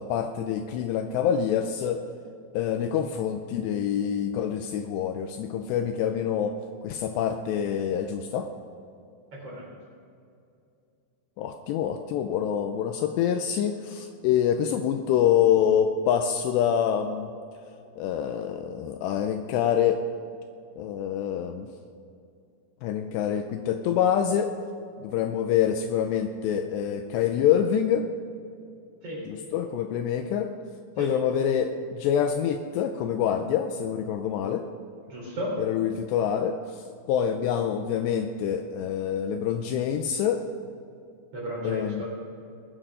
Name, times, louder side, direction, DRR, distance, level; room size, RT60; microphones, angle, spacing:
voice 1, 0.0-2.0 2.5-6.6 6.8-8.5 11.4-17.3 18.0-20.0 20.8-21.7 22.8-24.5 25.0-28.1 29.3-30.5 31.0-34.6 35.6-36.6 37.1-40.4 41.6-42.0, left 9 dB, 85° left, 6 dB, 2.5 m, -26 dB
voice 2, 9.3-9.7 29.0-29.3 31.0-31.1 35.1-35.6 41.3-42.0, equal, 35° right, -5 dB, 4.7 m, -33 dB
20.5 x 8.9 x 5.0 m, 2.5 s
omnidirectional pair, 5.4 m